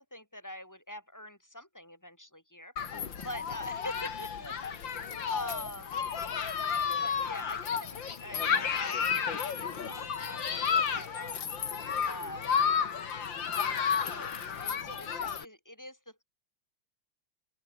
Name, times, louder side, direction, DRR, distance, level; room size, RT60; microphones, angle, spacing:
voice 1, 0.0-6.0 6.8-11.5 12.0-12.6 13.9-16.2, left 1 dB, 10° left, 2.5 m, -45 dB
Human group actions, 2.8-15.4, left 7 dB, 65° left, 2.7 m, -32 dB
open air
omnidirectional pair, 2.2 m